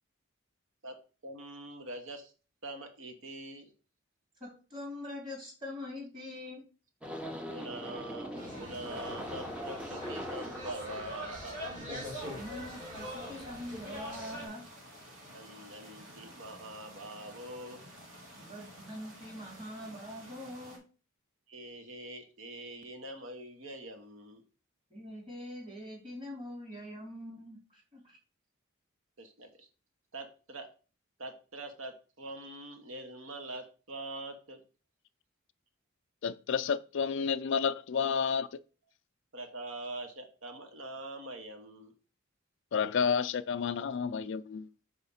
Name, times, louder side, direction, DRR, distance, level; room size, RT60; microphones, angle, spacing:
voice 1, 1.2-2.3 2.6-3.7 7.4-11.6 15.3-17.8 21.5-24.4 29.2-29.7 30.1-30.7 31.2-34.6 39.3-41.9, right 1 dB, 70° right, 1.2 m, -44 dB
voice 2, 4.4-6.6 12.3-14.6 18.3-20.8 24.9-28.2, left 1 dB, 25° right, 2.8 m, -43 dB
sound 1, 7.0-14.4, equal, 5° right, 0.7 m, -43 dB
sound 2, 8.3-14.5, equal, 40° right, 2.6 m, -42 dB
sound 3, 12.1-20.8, equal, 85° right, 2.2 m, -52 dB
voice 3, 36.2-38.5 42.7-44.7, left 6 dB, 60° left, 0.4 m, -30 dB
4.9 x 3.6 x 5.5 m
head